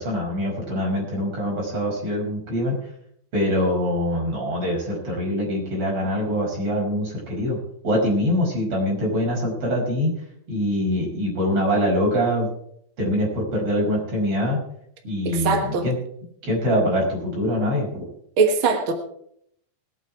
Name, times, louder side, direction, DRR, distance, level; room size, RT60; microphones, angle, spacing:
voice 1, 0.0-2.8 3.3-7.6 7.8-10.1 10.5-12.5 13.0-14.6 15.0-16.0 16.4-18.0, equal, 40° right, -3 dB, 6.1 m, -24 dB
voice 2, 15.2-15.9 18.4-18.9, right 4 dB, 60° right, 4 dB, 1.4 m, -21 dB
19.5 x 8.5 x 4.8 m, 0.69 s
omnidirectional pair, 4.2 m